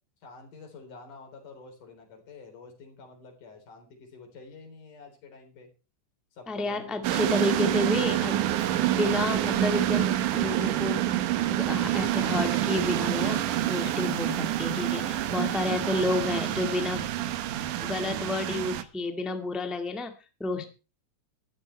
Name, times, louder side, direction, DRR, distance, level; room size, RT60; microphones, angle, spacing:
voice 1, 0.2-5.7 6.3-7.0 14.9-15.6 20.6-20.7, left 4 dB, 85° left, 4 dB, 5.4 m, -48 dB
voice 2, 6.5-8.4 8.9-11.1 11.5-13.4 13.7-17.1 17.8-20.1 20.4-20.6, left 2 dB, ahead, 6 dB, 1.2 m, -30 dB
sound 1, 7.0-18.8, right 13 dB, 85° right, 2.6 m, -27 dB
13.5 x 13.5 x 4.5 m, 0.33 s
omnidirectional pair, 3.5 m